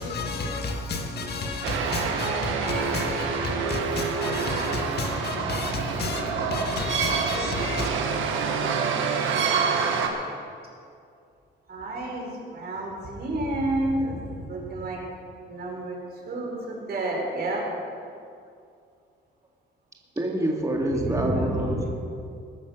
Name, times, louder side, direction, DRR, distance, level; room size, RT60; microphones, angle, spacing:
voice 1, 0.0-7.9, left 3 dB, 55° left, 1.9 m, -31 dB
sound 1, 1.6-10.1, right 5 dB, 80° right, 1.7 m, -27 dB
voice 2, 11.7-15.0 15.5-17.7 20.9-21.8, right 1 dB, 55° right, 4.5 m, -30 dB
voice 3, 20.2-21.9, right 1 dB, 15° right, 2.3 m, -26 dB
21.0 x 7.1 x 6.4 m
cardioid pair, 90°, 20 cm